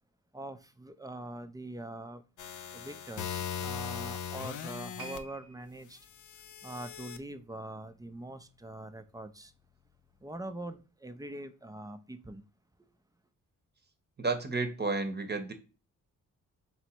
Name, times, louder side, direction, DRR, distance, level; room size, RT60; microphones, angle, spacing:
voice 1, 0.3-2.2 2.7-6.0 6.6-9.5 10.2-12.4, right 1 dB, 10° right, 0.5 m, -43 dB
sound 1, 2.4-5.2 6.1-7.2, left 8 dB, 60° left, 0.5 m, -39 dB
sound 2, 5.0-8.3 8.6-8.8 9.5-9.6, right 2 dB, 85° right, 0.9 m, -53 dB
voice 2, 14.2-15.5, right 3 dB, 30° right, 0.9 m, -31 dB
3.1 x 3.0 x 4.4 m
supercardioid pair, 55°, 35 cm